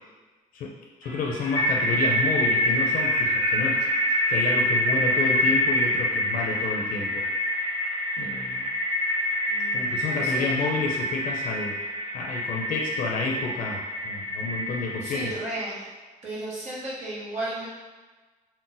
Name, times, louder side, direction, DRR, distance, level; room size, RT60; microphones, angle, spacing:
voice 1, 0.5-3.9 4.3-7.2 8.2-8.7 9.7-11.8 12.1-15.3, left 4 dB, 65° left, -1 dB, 0.4 m, -30 dB
sound 1, 1.0-15.3, equal, 20° left, 1.0 m, -26 dB
voice 2, 9.5-10.7 15.0-15.9 16.2-17.7, right 1 dB, 50° right, -7 dB, 0.9 m, -34 dB
2.5 x 2.1 x 3.8 m, 1.3 s
cardioid pair, 155°, 15 cm